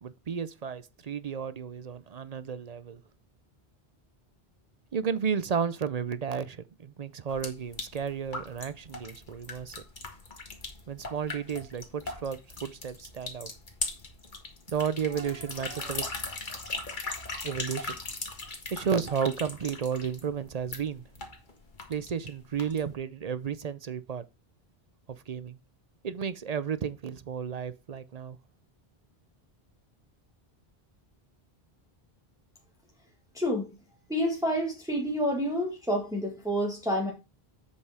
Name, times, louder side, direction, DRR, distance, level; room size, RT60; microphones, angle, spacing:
voice 1, 0.0-3.0 4.9-9.8 10.9-13.5 14.7-16.1 17.4-18.0 18.7-21.0 21.9-24.2 25.3-25.6 26.0-28.4, right 7 dB, 45° right, 0.6 m, -33 dB
sound 1, 7.3-23.0, left 3 dB, 50° left, 1.7 m, -39 dB
voice 2, 33.3-33.7 34.1-37.1, equal, 5° right, 1.7 m, -28 dB
8.1 x 5.4 x 4.8 m
omnidirectional pair, 1.0 m